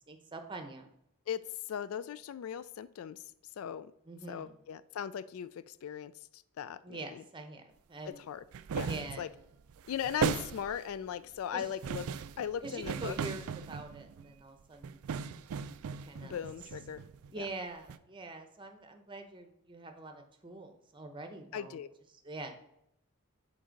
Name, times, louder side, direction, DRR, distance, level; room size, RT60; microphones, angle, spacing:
voice 1, 0.1-0.9 4.1-4.6 6.8-8.2 8.8-9.3 11.5-11.7 12.6-15.0 16.1-16.4 16.9-17.0 17.3-21.8 22.1-22.5, right 2 dB, 20° right, 5 dB, 0.8 m, -45 dB
voice 2, 1.3-3.2 3.6-3.9 4.3-7.2 8.1-8.4 8.7-9.3 9.9-12.0 12.4-13.2 16.2-17.0 17.4-17.5 21.5-21.9, left 9 dB, 75° left, 16 dB, 0.3 m, -39 dB
sound 1, 8.5-9.3 9.7-11.0 11.6-14.3 14.8-17.5 17.9-18.0, right 6 dB, 85° right, 0.4 m, -37 dB
7.8 x 4.0 x 5.1 m, 0.79 s
head